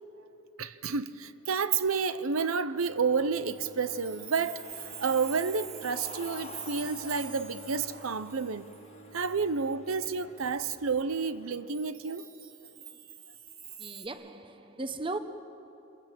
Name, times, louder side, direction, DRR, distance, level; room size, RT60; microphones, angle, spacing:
voice 1, 0.6-4.6 5.0-8.7 9.1-12.3, right 5 dB, 85° right, 0.7 m, -30 dB
Cheering, 2.6-11.9, left 5 dB, 30° left, 0.7 m, -52 dB
Bowed string instrument, 2.8-11.0, right 2 dB, 60° left, 1.9 m, -52 dB
Chime, 3.5-9.6 10.0-10.1 11.7-14.1, right 8 dB, 45° right, 1.9 m, -45 dB
voice 2, 13.8-15.2, right 2 dB, 25° right, 0.9 m, -37 dB
27.0 x 23.0 x 7.6 m
head